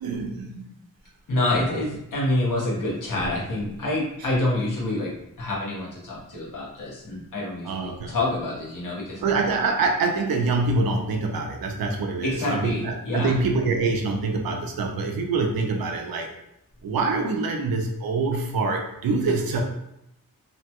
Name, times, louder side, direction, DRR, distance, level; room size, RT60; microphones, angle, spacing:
voice 1, 0.0-0.6 4.2-4.3 7.6-8.1 9.2-16.3 16.8-19.6, right 3 dB, 85° right, 2 dB, 0.6 m, -25 dB
voice 2, 1.3-5.1 5.4-9.2 12.2-13.3, left 1 dB, 65° left, -5 dB, 1.0 m, -27 dB
2.8 x 2.2 x 2.8 m, 0.82 s
wide cardioid pair, 170°, 34 cm